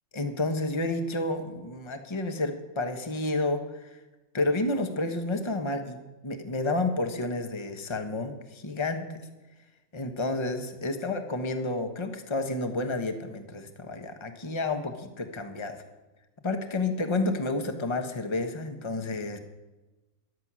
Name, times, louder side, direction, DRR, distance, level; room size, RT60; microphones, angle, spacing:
voice 1, 0.1-3.6 4.3-6.0 6.2-9.1 9.9-15.8 16.4-19.4, left 2 dB, 20° left, 6 dB, 1.1 m, -30 dB
14.0 x 11.5 x 6.1 m, 1.1 s
omnidirectional pair, 1.4 m